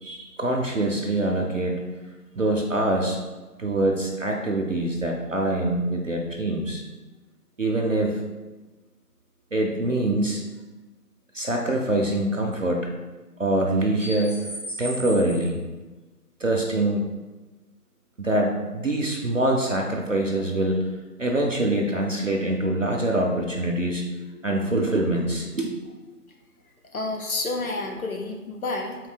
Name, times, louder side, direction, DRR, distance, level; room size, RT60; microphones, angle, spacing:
voice 1, 0.0-1.9 2.4-3.2 3.6-6.8 7.6-8.2 9.5-10.4 11.3-12.9 13.4-15.6 16.4-17.1 18.2-20.8 21.2-24.1 24.3-26.0, right 1 dB, 55° right, 1 dB, 0.5 m, -24 dB
voice 2, 26.9-29.0, left 2 dB, 60° left, 2 dB, 0.8 m, -29 dB
3.7 x 2.7 x 4.2 m, 1.2 s
figure-of-eight pair, 160°, 48 cm